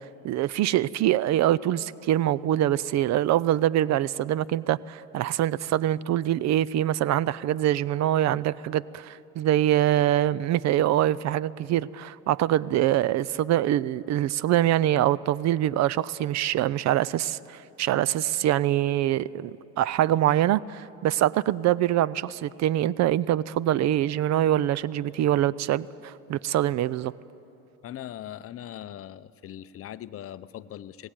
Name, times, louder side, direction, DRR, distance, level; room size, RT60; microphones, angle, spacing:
voice 1, 0.2-27.1, right 12 dB, 50° right, 21 dB, 0.5 m, -24 dB
voice 2, 27.8-31.1, left 11 dB, 40° left, 15 dB, 0.6 m, -40 dB
21.0 x 17.5 x 9.0 m, 2.9 s
cardioid pair, 115°, 35 cm